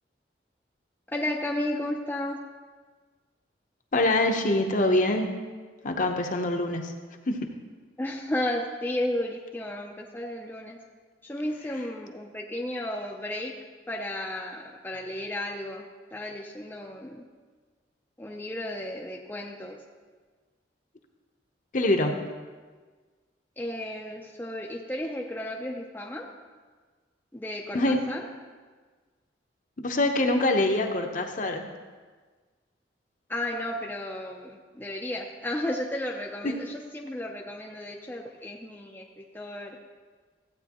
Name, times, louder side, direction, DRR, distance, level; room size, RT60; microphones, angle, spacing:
voice 1, 1.1-2.4 8.0-10.8 11.2-13.5 13.9-17.2 18.2-19.8 23.6-26.3 27.3-28.3 33.3-39.8, left 1 dB, 10° left, -1 dB, 0.5 m, -33 dB
voice 2, 3.9-5.3 5.8-6.9 7.3-7.5 21.7-22.3 27.7-28.0 29.8-31.7 36.4-36.5, left 2 dB, 45° left, 4 dB, 0.8 m, -24 dB
14.5 x 8.8 x 3.0 m, 1.4 s
head